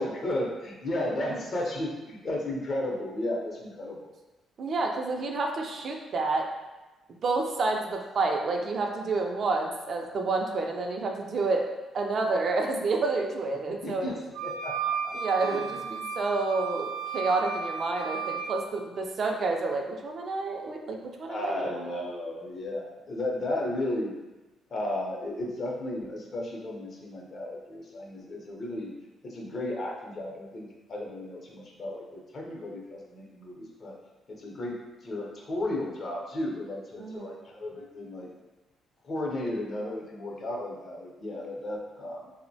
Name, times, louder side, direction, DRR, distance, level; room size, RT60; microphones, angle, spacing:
voice 1, 0.0-4.1 13.8-15.1 15.4-15.8 21.3-24.1 24.7-28.9 29.2-34.0 34.3-38.3 39.0-42.3, left 1 dB, 50° left, -1 dB, 0.6 m, -34 dB
voice 2, 4.6-6.5 7.2-11.6 11.9-14.1 15.1-21.9 37.0-37.4, right 3 dB, 55° right, 2 dB, 0.3 m, -29 dB
sound 1, 14.3-18.5, right 6 dB, 85° right, 0.7 m, -34 dB
2.9 x 2.0 x 2.6 m, 1.1 s
cardioid pair, 90°, 0 cm